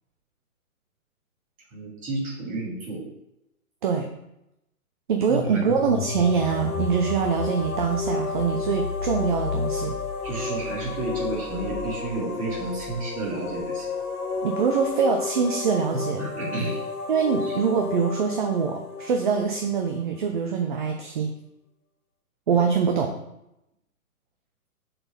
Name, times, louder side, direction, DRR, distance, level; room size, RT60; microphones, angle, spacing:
voice 1, 1.7-3.0 5.2-5.6 10.2-13.9 15.9-16.8 17.4-17.6, right 2 dB, 15° right, -4 dB, 2.1 m, -31 dB
voice 2, 5.1-10.0 14.4-16.2 17.1-21.3 22.5-23.1, right 6 dB, 35° right, 4 dB, 0.6 m, -24 dB
sound 1, 5.4-14.1, left 5 dB, 65° left, 0.9 m, -35 dB
sound 2, 5.5-20.2, left 4 dB, 80° left, 1.5 m, -32 dB
6.8 x 4.2 x 5.5 m, 0.85 s
hypercardioid pair, 135°, 44 cm